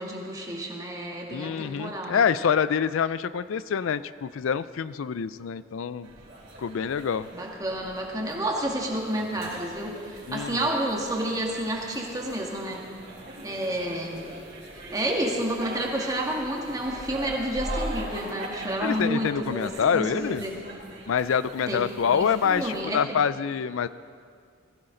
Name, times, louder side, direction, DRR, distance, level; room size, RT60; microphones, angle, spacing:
voice 1, 0.0-2.2 7.3-12.8 13.4-14.2 14.9-20.6 21.7-21.8 22.1-23.0, right 1 dB, 20° right, -1 dB, 1.9 m, -30 dB
voice 2, 1.3-6.1 6.6-7.3 10.3-10.6 18.8-20.4 21.1-23.9, left 7 dB, 80° left, 16 dB, 0.4 m, -26 dB
sound 1, 6.0-22.8, right 1 dB, 55° right, 4.1 m, -41 dB
21.0 x 15.0 x 3.9 m, 2.2 s
head